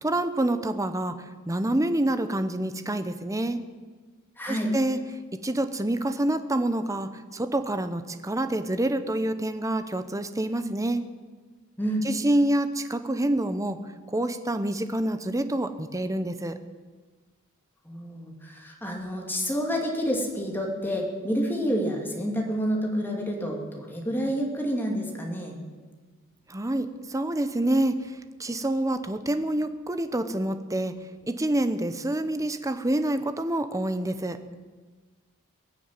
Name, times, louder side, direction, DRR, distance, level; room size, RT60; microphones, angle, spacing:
voice 1, 0.0-1.2 1.5-3.6 4.5-5.0 5.4-11.0 12.0-13.8 14.1-16.5 26.5-28.1 28.4-30.9 31.3-34.4, right 1 dB, 15° right, 10 dB, 0.8 m, -27 dB
voice 2, 4.4-4.7 11.8-12.0 17.8-25.5, equal, 10° left, 0 dB, 2.7 m, -29 dB
21.5 x 7.2 x 8.9 m, 1.4 s
head